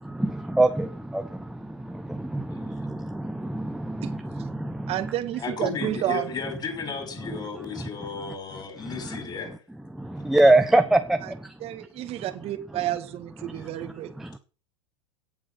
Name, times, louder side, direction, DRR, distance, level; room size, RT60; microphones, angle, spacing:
voice 1, 0.0-4.9 7.8-7.9 9.1-9.2 10.0-11.4 13.4-13.7 14.2-14.4, right 2 dB, ahead, 1.1 m, -24 dB
voice 2, 2.5-2.9 5.4-9.6 10.2-10.3, left 5 dB, 25° left, 5.7 m, -34 dB
voice 3, 4.9-6.3 11.2-11.3 11.6-14.1, right 13 dB, 40° right, 1.8 m, -30 dB
17.0 x 7.5 x 6.0 m
hypercardioid pair, 95°, 16 cm